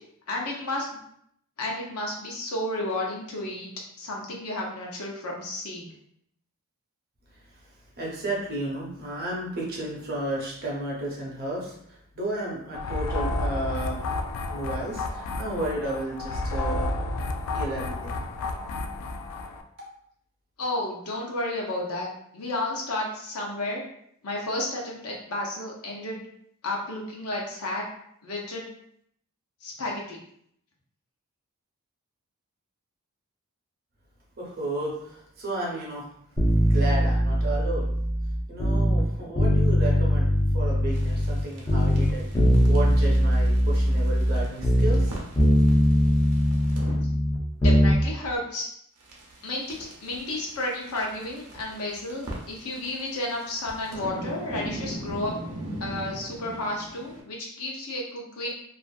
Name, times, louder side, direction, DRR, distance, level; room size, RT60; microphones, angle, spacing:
voice 1, 0.3-0.9 1.6-3.7 4.0-5.9 20.6-22.1 22.3-23.8 24.2-26.2 26.6-27.8 28.2-28.7 29.6-30.2 47.6-48.7 49.4-55.3 55.8-58.5, left 1 dB, 70° left, -2 dB, 0.7 m, -32 dB
voice 2, 7.3-7.7 8.0-14.0 14.5-16.9 17.5-18.2 34.4-36.1 36.6-37.9 38.5-42.2 42.7-45.2, right 1 dB, 45° right, -3 dB, 0.8 m, -33 dB
sound 1, 12.7-19.6, left 2 dB, 85° left, 0.3 m, -31 dB
sound 2, 36.4-39.0 39.4-41.4 41.7-45.1 45.4-48.0 48.3-48.4, equal, 15° left, 0.4 m, -21 dB
sound 3, 40.9-46.9 49.0-57.2, right 1 dB, 90° right, 0.6 m, -40 dB
2.5 x 2.4 x 2.3 m, 0.69 s
head